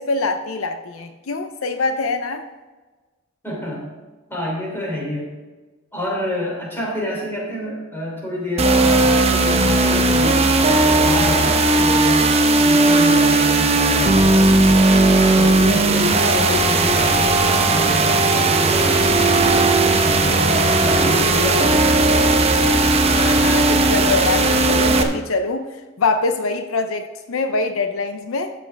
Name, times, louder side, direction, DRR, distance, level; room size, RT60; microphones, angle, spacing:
voice 1, 0.0-2.4 23.1-25.7 26.0-28.5, left 3 dB, 80° left, 8 dB, 0.6 m, -24 dB
voice 2, 3.4-3.8 4.3-5.3 5.9-10.5 10.9-12.3 12.6-14.7 15.3-19.2 20.0-21.9, left 1 dB, 10° left, -3 dB, 3.0 m, -27 dB
sound 1, 8.6-25.0, right 2 dB, 30° right, 0.8 m, -16 dB
12.0 x 7.8 x 3.4 m, 1.3 s
head